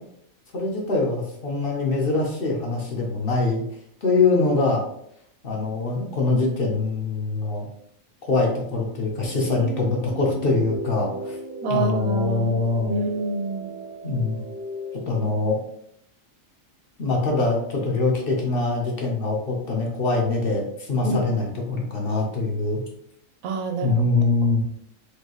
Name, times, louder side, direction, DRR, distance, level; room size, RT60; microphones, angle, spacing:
voice 1, 0.5-3.6 4.0-4.8 5.4-7.7 8.3-11.4 11.7-13.0 14.0-14.4 15.1-15.6 17.0-22.8 23.8-24.6, left 3 dB, 50° left, -1 dB, 0.9 m, -23 dB
sound 1, 9.2-15.2, right 1 dB, 60° right, 1.1 m, -36 dB
voice 2, 11.6-12.6 12.9-13.7 21.0-21.2 23.4-24.0, right 3 dB, 85° right, 3 dB, 1.1 m, -26 dB
4.7 x 2.9 x 3.0 m, 0.70 s
omnidirectional pair, 1.4 m